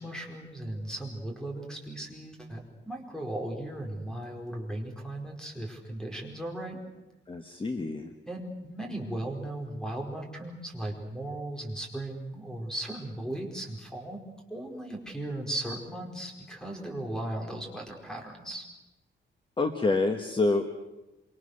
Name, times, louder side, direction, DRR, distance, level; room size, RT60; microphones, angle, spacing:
voice 1, 0.0-6.8 8.3-14.2 14.5-18.7, right 1 dB, 5° left, 1 dB, 4.6 m, -37 dB
voice 2, 7.3-8.1 19.6-20.8, left 3 dB, 25° left, 6 dB, 1.4 m, -27 dB
27.0 x 25.0 x 6.6 m, 1.0 s
wide cardioid pair, 160°, 20 cm